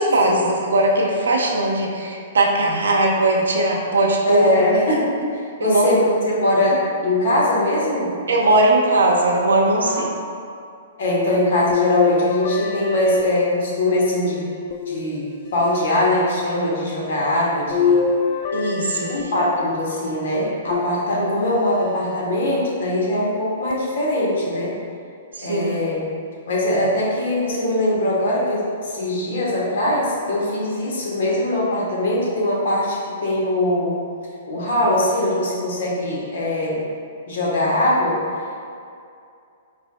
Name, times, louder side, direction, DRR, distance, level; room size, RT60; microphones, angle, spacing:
voice 1, 0.0-4.6 4.9-5.0 5.6-5.9 8.3-10.1 18.5-19.0 21.2-21.4 25.4-25.7, right 2 dB, 90° right, -1 dB, 0.6 m, -19 dB
voice 2, 4.2-8.2 9.8-10.1 11.0-14.5 14.9-18.0 18.9-24.7 25.4-26.0 26.5-34.0 34.5-36.8 37.3-38.2, left 1 dB, 70° left, -4 dB, 1.1 m, -21 dB
sound 1, 11.7-14.0 14.7-15.7 17.7-19.8 20.7-21.6 22.2-22.3 23.7-23.8, left 5 dB, 40° left, 0.3 m, -24 dB
5.0 x 3.3 x 2.2 m, 2.4 s
hypercardioid pair, 140°, 0 cm